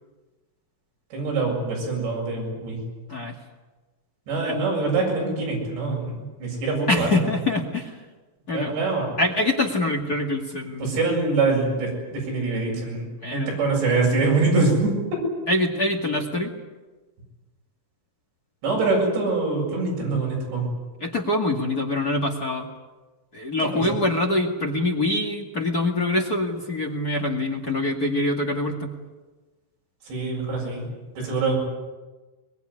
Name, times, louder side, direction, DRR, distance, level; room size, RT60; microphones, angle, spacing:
voice 1, 1.1-2.8 4.3-7.2 8.5-9.2 10.8-15.2 18.6-20.6 23.6-24.0 30.1-30.9 31.2-31.6, right 3 dB, 75° right, -2 dB, 9.7 m, -24 dB
voice 2, 6.9-8.0 8.5-8.7 9.2-10.9 13.2-13.5 15.5-16.5 21.0-22.7 23.3-28.9, left 2 dB, 35° left, 2 dB, 1.5 m, -24 dB
22.5 x 22.5 x 9.8 m, 1.2 s
omnidirectional pair, 5.1 m